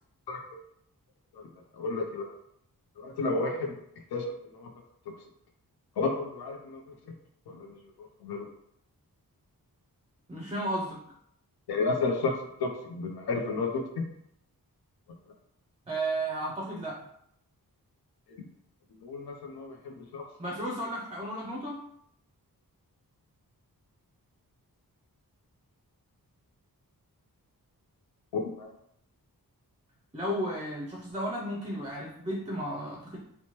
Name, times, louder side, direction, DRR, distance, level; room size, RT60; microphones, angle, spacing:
voice 1, 0.3-0.6 1.3-1.5 1.7-2.3 3.0-3.7 4.1-4.7 6.0-6.8 7.5-7.7 8.0-8.5 11.7-14.1 19.0-20.3 28.3-28.7, left 3 dB, 85° left, 1 dB, 0.5 m, -32 dB
voice 2, 10.3-11.0 15.9-17.1 20.4-21.8 30.1-33.2, right 1 dB, 20° right, -2 dB, 0.4 m, -33 dB
2.9 x 2.1 x 2.9 m, 0.72 s
wide cardioid pair, 105°, 37 cm